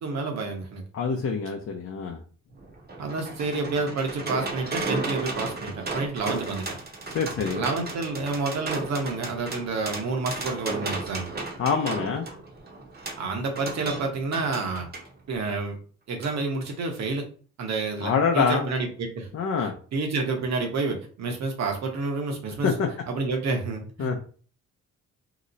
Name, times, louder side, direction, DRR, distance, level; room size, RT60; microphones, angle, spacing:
voice 1, 0.0-0.8 3.0-6.8 7.4-11.3 13.2-14.9 15.3-15.8 16.1-17.3 17.6-19.3 19.6-22.7 23.1-24.2, right 3 dB, 60° right, 3 dB, 1.0 m, -29 dB
voice 2, 0.9-2.2 7.0-7.6 11.6-12.2 18.0-18.7 19.3-19.7 22.6-22.9 24.0-24.2, left 5 dB, 50° left, 2 dB, 0.6 m, -25 dB
sound 1, 2.5-15.1 16.2-16.4 16.7-16.8, right 3 dB, 30° right, 0.8 m, -34 dB
2.9 x 2.1 x 3.9 m, 0.42 s
cardioid pair, 90°, 30 cm